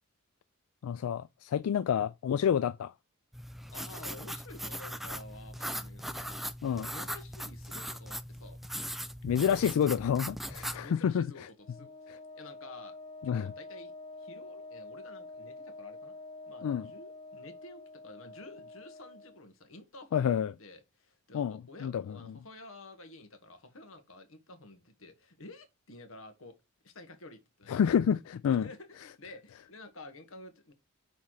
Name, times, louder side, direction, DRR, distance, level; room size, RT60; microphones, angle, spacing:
voice 1, 0.8-2.9 6.6-6.9 9.2-11.3 13.2-13.5 16.6-16.9 20.1-20.5 21.3-22.1 27.7-28.7, left 8 dB, 85° left, 0.3 m, -28 dB
sound 1, 3.3-10.9, equal, ahead, 0.4 m, -40 dB
voice 2, 3.7-8.6 9.3-9.7 10.7-13.0 13.2-13.9 14.2-16.2 16.5-26.6 26.8-27.8 28.5-30.7, left 2 dB, 70° left, 1.4 m, -51 dB
Wind instrument woodwind instrument, 11.6-19.4, left 2 dB, 50° left, 2.5 m, -47 dB
5.7 x 4.2 x 4.7 m
head